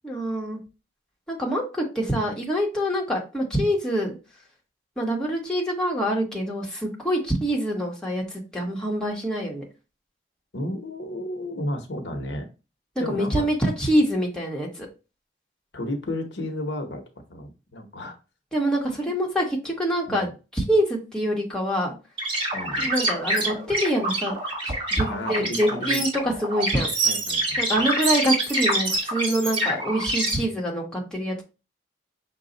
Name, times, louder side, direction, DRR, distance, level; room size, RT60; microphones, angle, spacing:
voice 1, 0.0-0.6 1.3-4.1 5.0-9.6 13.1-14.9 18.5-21.9 22.8-24.3 24.9-26.9 27.6-31.4, equal, 5° left, -3 dB, 1.2 m, -25 dB
voice 2, 10.5-12.5 13.0-13.5 15.7-17.0 17.3-18.2 19.0-19.1 20.1-20.3 22.5-22.9 25.1-26.0 27.0-27.6, left 1 dB, 80° left, 4 dB, 0.9 m, -32 dB
sound 1, 22.2-30.3, right 1 dB, 30° right, 1.6 m, -26 dB
5.7 x 2.3 x 3.9 m, 0.30 s
head